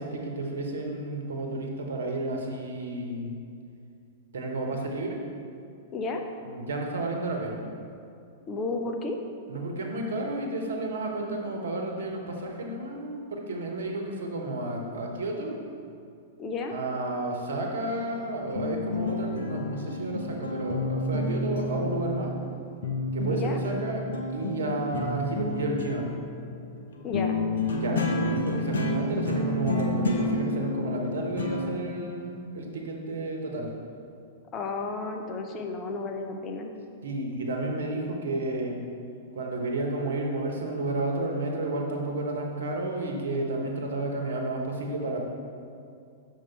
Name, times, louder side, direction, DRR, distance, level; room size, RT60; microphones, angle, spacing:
voice 1, 0.0-3.4 4.3-5.2 6.4-7.6 9.5-15.5 16.7-22.3 23.1-26.1 27.7-33.7 37.0-38.8 39.3-45.2, right 2 dB, 70° right, 1 dB, 1.0 m, -31 dB
voice 2, 5.9-6.2 8.5-9.2 16.4-16.7 23.3-23.6 27.0-27.4 34.5-36.7, left 3 dB, 30° left, 3 dB, 0.7 m, -32 dB
sound 1, 18.0-22.6 22.8-31.7, left 2 dB, 75° left, 0.8 m, -30 dB
6.5 x 4.6 x 4.6 m, 2.4 s
figure-of-eight pair, 100°, 0 cm